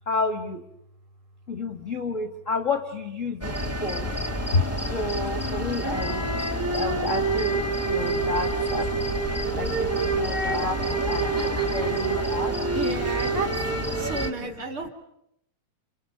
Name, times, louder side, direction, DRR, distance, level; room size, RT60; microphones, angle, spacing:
voice 1, 0.1-0.6 1.5-4.1 4.5-4.6 4.9-8.9 9.5-10.8 11.0-12.6 13.9-14.3, left 3 dB, 65° left, 7 dB, 0.7 m, -30 dB
sound 1, 3.4-14.3, right 2 dB, 25° right, 0.3 m, -27 dB
sound 2, 8.0-13.4, right 3 dB, 70° right, 3.0 m, -41 dB
voice 2, 12.8-13.5 13.9-14.9, right 3 dB, 45° right, 6 dB, 2.3 m, -31 dB
30.0 x 30.0 x 6.4 m, 0.81 s
omnidirectional pair, 4.0 m